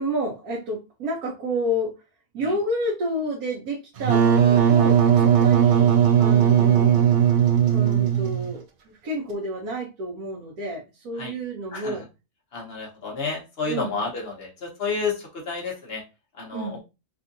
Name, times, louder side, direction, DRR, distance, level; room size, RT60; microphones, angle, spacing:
voice 1, 0.0-1.9 2.3-5.9 6.2-7.1 7.6-12.0 13.6-14.0 16.5-16.8, equal, 75° right, -4 dB, 1.3 m, -30 dB
Wind instrument woodwind instrument, 4.0-8.5, right 9 dB, 90° right, 0.4 m, -18 dB
voice 2, 12.5-16.0 16.4-16.8, left 4 dB, 45° left, -1 dB, 1.3 m, -30 dB
3.6 x 2.6 x 2.5 m, 0.27 s
omnidirectional pair, 1.6 m